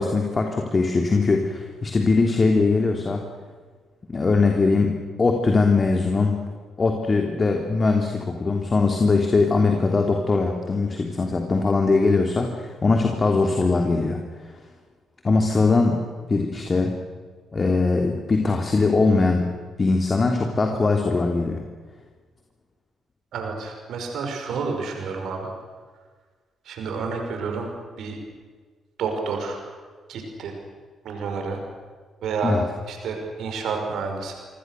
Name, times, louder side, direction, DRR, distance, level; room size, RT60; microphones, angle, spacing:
voice 1, 0.0-3.2 4.1-4.9 5.2-6.4 6.8-14.5 15.2-16.0 16.3-17.0 17.5-21.6 32.4-32.6, left 3 dB, 35° left, 3 dB, 3.3 m, -21 dB
voice 2, 23.3-25.5 26.6-27.7 28.0-28.2 29.0-29.6 30.1-30.6 31.0-31.6 32.2-32.6 32.9-34.3, right 4 dB, 60° right, 3 dB, 5.8 m, -29 dB
28.0 x 26.0 x 6.7 m, 1.5 s
figure-of-eight pair, 40°, 0 cm